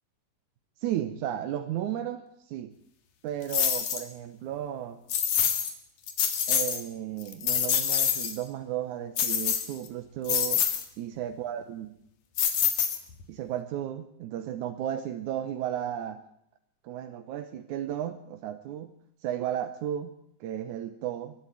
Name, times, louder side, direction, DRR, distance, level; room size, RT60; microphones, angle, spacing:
voice 1, 0.8-2.7 3.2-5.0 6.5-10.7 11.0-12.0 13.3-16.2 16.8-18.9 19.2-20.1 20.4-21.3, right 11 dB, 85° right, 8 dB, 2.4 m, -34 dB
sound 1, 3.5-4.0 5.1-5.7 6.1-6.8 7.2-8.4 9.2-9.9 10.3-10.8 12.4-13.2, left 8 dB, 85° left, 3.4 m, -26 dB
23.0 x 12.0 x 9.3 m, 0.71 s
omnidirectional pair, 3.4 m